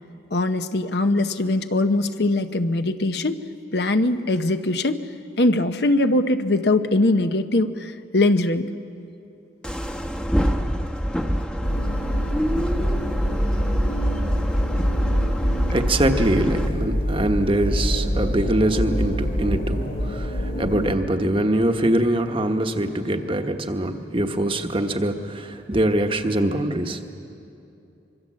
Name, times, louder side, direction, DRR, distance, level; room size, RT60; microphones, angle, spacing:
voice 1, 0.3-3.4 3.7-5.0 5.4-8.7, left 2 dB, 65° left, 9 dB, 0.9 m, -21 dB
sound 1, 9.6-16.7, equal, 5° left, 0.9 m, -24 dB
sound 2, 11.6-20.9, equal, 85° left, 4.2 m, -27 dB
voice 2, 15.7-27.0, right 1 dB, 30° right, 5 dB, 1.1 m, -23 dB
25.0 x 23.5 x 7.6 m, 2.7 s
head